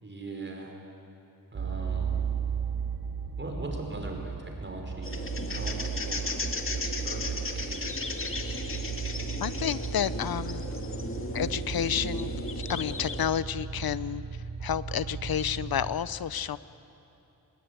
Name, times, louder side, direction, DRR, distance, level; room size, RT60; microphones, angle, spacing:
voice 1, 0.0-0.8 1.5-2.2 3.4-5.8 6.1-6.4 6.6-7.4 7.7-7.9, right 2 dB, 30° right, 1 dB, 5.3 m, -40 dB
sound 1, 1.5-16.0, right 6 dB, 85° right, 4.1 m, -35 dB
sound 2, 5.0-13.3, left 3 dB, 35° left, 2.0 m, -36 dB
voice 2, 9.4-10.6 11.3-12.3 12.7-14.2 14.6-16.6, left 9 dB, 80° left, 16 dB, 0.8 m, -30 dB
26.0 x 20.5 x 9.7 m, 2.9 s
wide cardioid pair, 100°, 35 cm